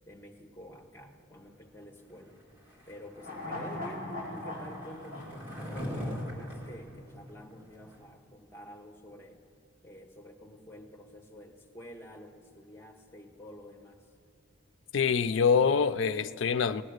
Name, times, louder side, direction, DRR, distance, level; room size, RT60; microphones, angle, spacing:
voice 1, 0.1-2.4 2.9-9.4 9.8-14.0, equal, 10° left, 1.2 m, -48 dB
Skateboard, 2.6-8.0, equal, 10° right, 2.4 m, -42 dB
sound 1, 3.1-6.5 6.8-6.9, left 1 dB, 45° right, 4.7 m, -41 dB
voice 2, 14.9-16.8, left 6 dB, 70° left, 0.4 m, -25 dB
18.5 x 8.6 x 6.5 m
head